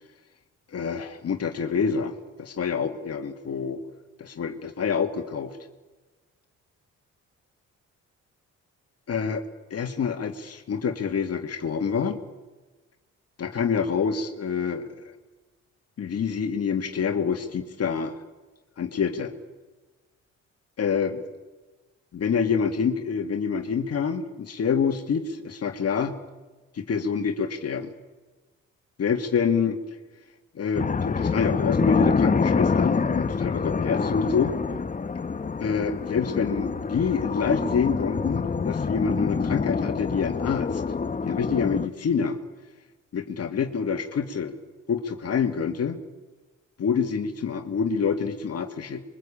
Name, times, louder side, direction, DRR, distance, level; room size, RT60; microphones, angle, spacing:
voice 1, 0.7-3.8 4.2-5.6 9.1-9.4 9.7-12.2 13.4-15.1 16.0-18.2 18.8-19.3 20.8-21.2 22.1-26.2 26.7-27.9 29.0-29.8 30.5-34.6 35.6-40.8 41.2-42.4 43.1-44.5 44.9-46.0 46.8-49.0, left 6 dB, 55° left, 5 dB, 2.3 m, -27 dB
sound 1, 30.7-41.9, left 5 dB, 25° left, 1.1 m, -26 dB
27.0 x 23.5 x 8.8 m, 1.2 s
cardioid pair, 90°, 30 cm